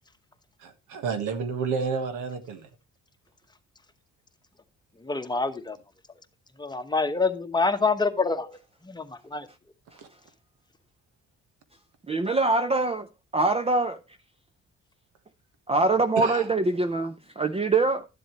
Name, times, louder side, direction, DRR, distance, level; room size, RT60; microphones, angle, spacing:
voice 1, 0.6-2.7 9.9-10.1 16.2-16.5, right 5 dB, 90° right, 1.5 m, -30 dB
voice 2, 5.0-5.8 6.6-8.6 8.9-9.5, left 4 dB, 15° left, 1.0 m, -26 dB
voice 3, 12.1-13.1 13.3-14.0 15.7-18.1, right 3 dB, 20° right, 0.6 m, -24 dB
12.5 x 7.7 x 3.0 m
cardioid pair, 90°, 30 cm